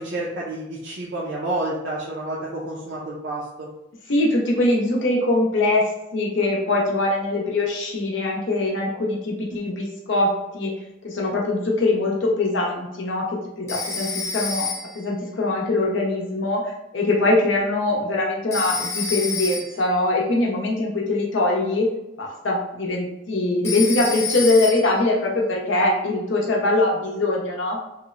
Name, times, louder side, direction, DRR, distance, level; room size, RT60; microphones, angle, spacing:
voice 1, 0.0-3.7, right 2 dB, 60° right, -5 dB, 0.4 m, -29 dB
voice 2, 4.1-5.8 6.1-10.7 11.0-14.7 14.9-21.9 22.2-27.8, left 2 dB, 65° left, -2 dB, 0.6 m, -22 dB
Telephone, 13.7-15.1 18.5-19.9 23.6-25.1, left 5 dB, 15° left, 0.3 m, -29 dB
2.9 x 2.0 x 2.4 m, 0.90 s
head